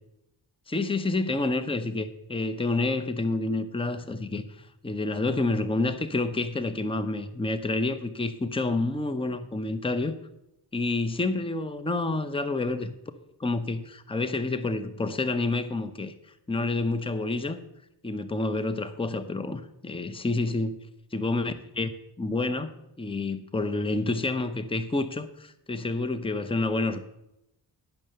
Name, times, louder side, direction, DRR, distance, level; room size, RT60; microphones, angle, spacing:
voice 1, 0.7-10.1 10.7-12.9 13.4-16.1 16.5-17.6 18.0-20.8 21.1-22.7 23.0-27.1, left 2 dB, 10° left, 11 dB, 0.7 m, -28 dB
10.5 x 5.7 x 6.5 m, 0.87 s
wide cardioid pair, 60°, 46 cm